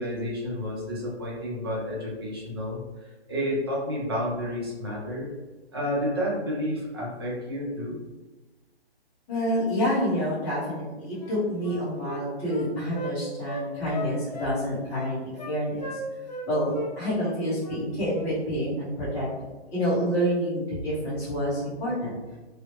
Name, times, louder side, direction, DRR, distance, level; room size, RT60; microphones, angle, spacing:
voice 1, 0.0-5.3 5.7-8.0, equal, 25° right, -5 dB, 0.6 m, -30 dB
voice 2, 9.3-16.0 16.5-19.3 19.7-22.1, equal, 10° left, -12 dB, 1.0 m, -28 dB
Wind instrument woodwind instrument, 11.2-13.1 13.5-14.6 14.9-15.5 15.8-16.5 16.7-16.9 17.2-17.8 18.1-18.3, left 1 dB, 40° left, 0.4 m, -36 dB
3.1 x 2.9 x 3.0 m, 1.2 s
hypercardioid pair, 165°, 33 cm